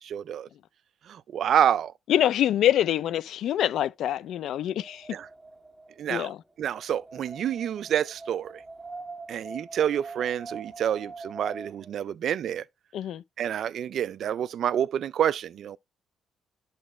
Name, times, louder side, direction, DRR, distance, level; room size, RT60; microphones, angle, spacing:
voice 1, 0.0-0.5 1.1-1.9 5.1-5.3 6.0-6.3 6.6-8.6 9.3-12.6 13.4-15.8, right 9 dB, 65° right, 0.4 m, -28 dB
voice 2, 2.1-5.1 6.1-6.4 12.9-13.2, left 11 dB, 75° left, 0.5 m, -25 dB
Wind, 4.0-11.9, right 3 dB, 15° right, 1.7 m, -44 dB
12.0 x 4.0 x 3.2 m
cardioid pair, 90°, 0 cm